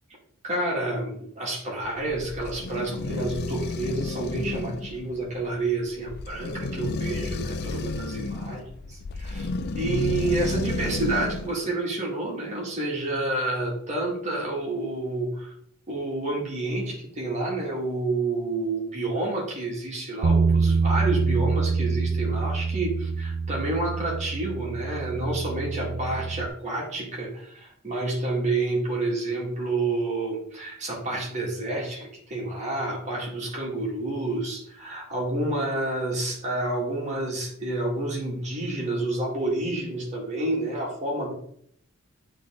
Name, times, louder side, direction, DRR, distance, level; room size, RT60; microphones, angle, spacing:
voice 1, 0.4-15.5 15.9-41.3, right 2 dB, 35° right, -3 dB, 2.3 m, -29 dB
sound 1, 1.8-11.6, left 3 dB, 50° left, 0.5 m, -32 dB
Bass guitar, 20.2-26.5, right 4 dB, 90° right, 0.5 m, -25 dB
8.6 x 3.7 x 3.8 m, 0.67 s
head